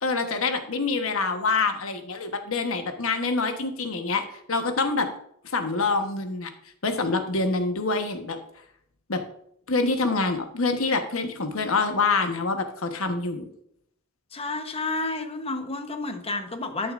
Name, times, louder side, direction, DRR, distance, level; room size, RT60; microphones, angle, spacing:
voice 1, 0.0-5.1 5.4-6.5 6.8-8.4 9.1-9.2 9.7-13.5, left 3 dB, 70° left, 6 dB, 1.2 m, -26 dB
voice 2, 14.3-16.9, left 3 dB, 30° left, 6 dB, 1.0 m, -30 dB
12.0 x 7.0 x 2.5 m, 0.70 s
head